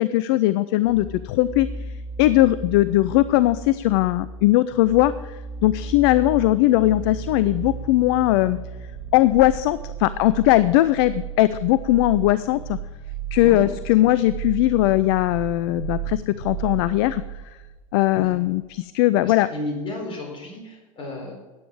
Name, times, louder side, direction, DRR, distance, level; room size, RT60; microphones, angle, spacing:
voice 1, 0.0-1.7 2.2-8.6 9.1-12.8 13.3-17.2 17.9-19.5, left 16 dB, 45° left, 16 dB, 0.4 m, -19 dB
sound 1, 0.8-18.4 18.6-18.7, right 6 dB, 30° right, 3.6 m, -35 dB
voice 2, 19.2-21.3, left 1 dB, 30° left, 1 dB, 4.2 m, -33 dB
12.5 x 9.0 x 4.8 m, 1.2 s
figure-of-eight pair, 90°, 18 cm